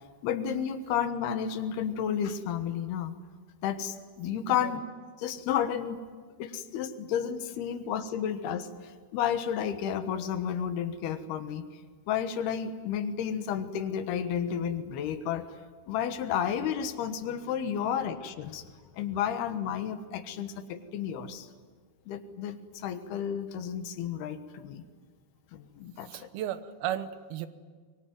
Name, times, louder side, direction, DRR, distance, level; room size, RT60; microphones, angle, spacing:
voice 1, 0.2-3.1 3.6-4.8 5.2-6.0 6.4-11.6 12.1-15.5 15.9-18.7 18.9-21.5 22.1-24.8 25.5-26.3, left 8 dB, 85° left, 9 dB, 3.4 m, -32 dB
voice 2, 26.1-27.5, right 11 dB, 75° right, 11 dB, 3.0 m, -35 dB
24.5 x 23.0 x 9.4 m, 1.5 s
omnidirectional pair, 4.5 m